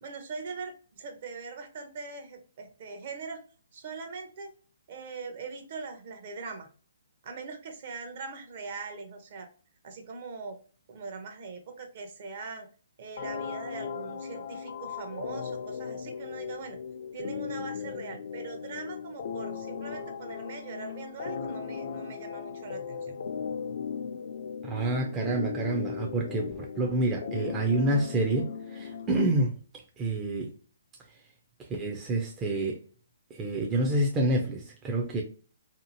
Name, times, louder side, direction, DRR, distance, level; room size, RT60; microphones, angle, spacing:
voice 1, 0.0-3.4 3.7-4.5 4.9-6.7 7.2-9.5 9.8-10.6 10.9-12.7 13.0-16.8 17.1-23.2, right 4 dB, 45° right, 0.7 m, -41 dB
sound 1, 13.2-29.2, left 6 dB, 55° left, 0.4 m, -37 dB
voice 2, 24.6-29.5 30.0-30.5 31.7-32.8 33.3-35.2, right 2 dB, 15° right, 0.4 m, -28 dB
2.8 x 2.4 x 2.7 m
hypercardioid pair, 150°, 0 cm